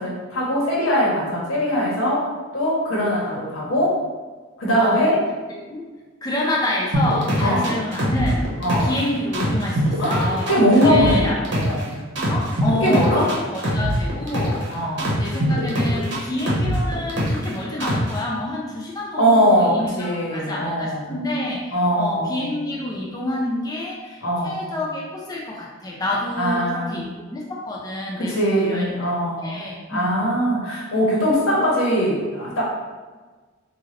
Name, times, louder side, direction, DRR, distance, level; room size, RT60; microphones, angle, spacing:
voice 1, 0.0-4.0 4.6-5.2 7.4-7.8 8.6-9.0 10.0-11.3 11.5-12.0 12.8-13.3 14.7-15.1 19.2-21.2 21.7-22.5 24.2-24.6 26.4-27.0 28.2-29.6 29.9-32.6, equal, 90° left, -5 dB, 1.1 m, -21 dB
voice 2, 5.5-5.8 6.2-8.5 8.8-11.4 12.3-29.1 29.4-30.3, left 1 dB, 20° left, -3 dB, 0.4 m, -28 dB
sound 1, 6.9-9.0 9.3-11.8 12.2-14.6 15.0-17.5 17.8-18.2, equal, 55° right, 0.8 m, -23 dB
3.8 x 2.5 x 3.1 m, 1.3 s
head